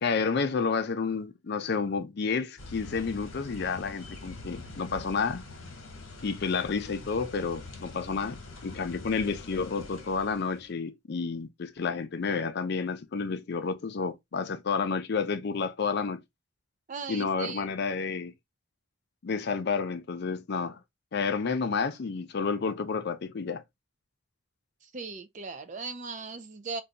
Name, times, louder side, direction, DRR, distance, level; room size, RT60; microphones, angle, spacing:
voice 1, 0.0-5.4 6.2-16.2 17.1-18.3 19.2-20.8 21.1-23.6, left 5 dB, 50° left, 0.4 m, -30 dB
sound 1, 2.6-10.7, left 2 dB, 75° left, 1.0 m, -44 dB
voice 2, 16.9-17.7 24.8-26.8, right 4 dB, 35° right, 0.4 m, -38 dB
2.6 x 2.3 x 3.8 m
head